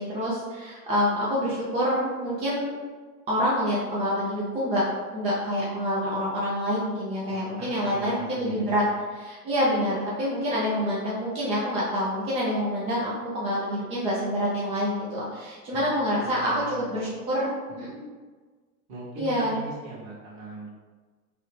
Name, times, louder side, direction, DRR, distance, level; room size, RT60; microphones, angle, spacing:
voice 1, 0.0-2.7 3.3-4.8 5.1-8.8 9.2-18.0 19.2-19.5, equal, 15° right, -7 dB, 0.4 m, -27 dB
voice 2, 7.3-8.9 15.7-17.0 18.9-20.7, right 1 dB, 35° right, -6 dB, 1.5 m, -41 dB
3.3 x 2.3 x 3.2 m, 1.4 s
hypercardioid pair, 115°, 45 cm